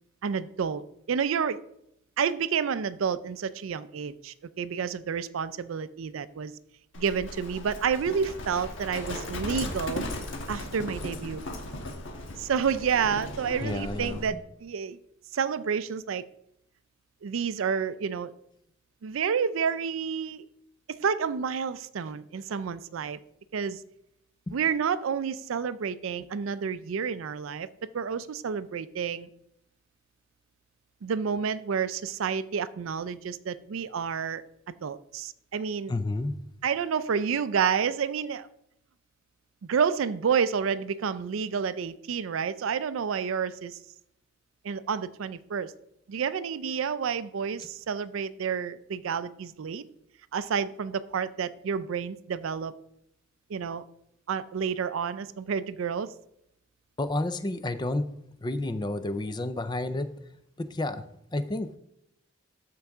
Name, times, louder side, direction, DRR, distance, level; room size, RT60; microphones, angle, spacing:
voice 1, 0.2-0.8 1.1-1.6 2.2-6.5 7.0-10.0 10.5-11.4 12.4-15.0 15.3-16.2 17.2-18.3 19.0-20.4 20.9-23.2 23.5-23.8 24.5-29.3 31.0-34.4 34.8-35.9 36.6-38.5 39.7-43.8 44.6-45.7 46.1-49.8 50.3-52.7 53.5-53.8 54.3-56.1, right 6 dB, 80° right, 15 dB, 0.4 m, -29 dB
Livestock farm animals working animals, 6.9-14.3, left 1 dB, 65° left, 1.3 m, -37 dB
voice 2, 13.6-14.4 24.5-24.6 35.9-36.4 57.0-58.1 58.4-60.1 60.6-61.0 61.3-61.7, left 2 dB, 20° left, 11 dB, 0.4 m, -30 dB
13.0 x 4.7 x 3.5 m, 0.78 s
head